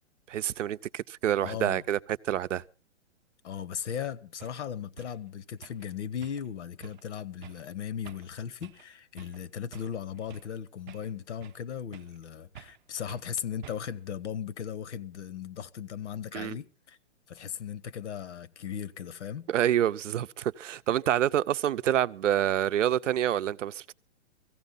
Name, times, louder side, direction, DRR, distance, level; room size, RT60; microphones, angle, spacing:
voice 1, 0.3-2.0 2.3-2.6 16.3-16.6 19.5-23.9, right 11 dB, 80° right, 0.7 m, -27 dB
voice 2, 1.4-1.8 3.4-17.0 17.3-19.5, left 8 dB, 70° left, 1.0 m, -37 dB
sound 1, 3.9-4.0 4.4-4.6 5.0-5.2 5.6-5.9 6.2-6.5 6.8-7.0 7.4-7.7 8.0-8.3 8.6-8.9 9.2-9.4 9.7-10.5 10.9-11.6 11.9-12.2 12.5-12.8 13.1-13.3 13.6-14.0, right 11 dB, 40° right, 0.6 m, -50 dB
17.5 x 15.5 x 3.9 m
hypercardioid pair, 165°, 37 cm